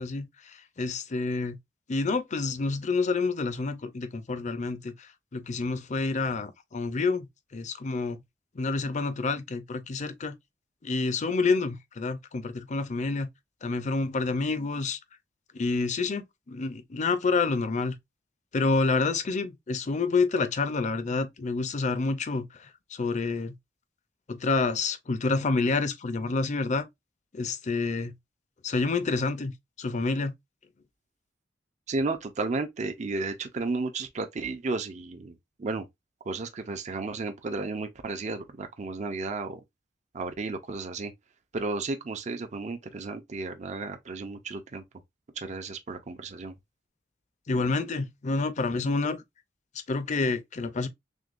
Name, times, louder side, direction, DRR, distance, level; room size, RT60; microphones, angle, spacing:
voice 1, 0.0-1.6 1.9-4.9 5.3-7.3 7.5-8.2 8.6-10.4 10.8-13.3 13.6-15.0 15.5-18.0 18.5-23.5 24.3-26.9 27.3-28.1 28.6-29.5 29.8-30.3 47.5-49.2 49.9-50.9, left 3 dB, 40° left, 0.5 m, -28 dB
voice 2, 31.9-35.9 36.3-39.6 40.1-41.1 41.5-44.8 45.4-46.5, right 3 dB, 40° right, 0.5 m, -33 dB
6.2 x 2.2 x 2.4 m
head